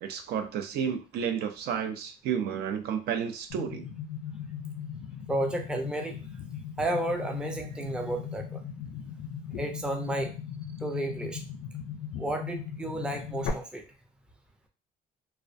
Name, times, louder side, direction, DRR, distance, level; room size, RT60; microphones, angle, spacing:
voice 1, 0.0-3.8, right 8 dB, 70° right, 6 dB, 0.4 m, -31 dB
sound 1, 3.5-13.5, left 8 dB, 85° left, 0.5 m, -38 dB
voice 2, 5.3-6.3 6.8-8.6 9.6-10.3 10.8-11.4 12.2-13.8, right 1 dB, 5° right, 4 dB, 0.4 m, -32 dB
2.4 x 2.1 x 2.5 m, 0.33 s
cardioid pair, 110°, 17 cm